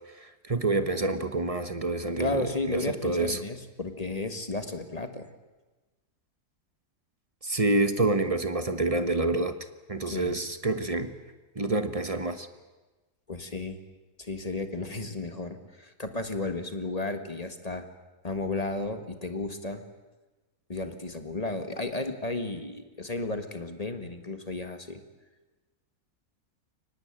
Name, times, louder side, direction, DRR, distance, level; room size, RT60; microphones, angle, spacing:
voice 1, 0.2-3.4 7.4-9.6 9.9-11.1 11.5-12.5, right 2 dB, 25° right, 10 dB, 1.2 m, -27 dB
voice 2, 2.2-5.3 10.1-10.4 13.3-13.8 14.2-17.9 18.2-19.9 20.7-25.0, left 2 dB, 25° left, 8 dB, 1.7 m, -33 dB
23.5 x 19.5 x 9.0 m, 1.2 s
omnidirectional pair, 1.6 m